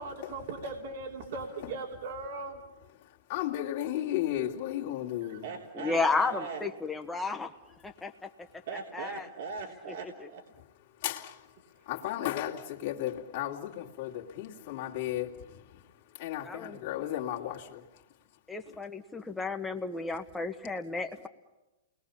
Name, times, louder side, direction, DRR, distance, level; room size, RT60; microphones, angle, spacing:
voice 1, 0.0-2.6 5.2-6.6 8.7-10.4 11.8-11.9, right 4 dB, 60° right, 3.4 m, -39 dB
voice 2, 3.0-5.4 11.0-11.5 11.8-15.8 16.1-17.9 18.7-18.8, left 12 dB, 45° left, 2.6 m, -34 dB
voice 3, 5.7-7.5 7.8-8.3 8.9-9.3 16.4-16.8 18.5-21.3, left 3 dB, 5° left, 1.5 m, -32 dB
29.0 x 21.0 x 7.2 m
hypercardioid pair, 145°, 0 cm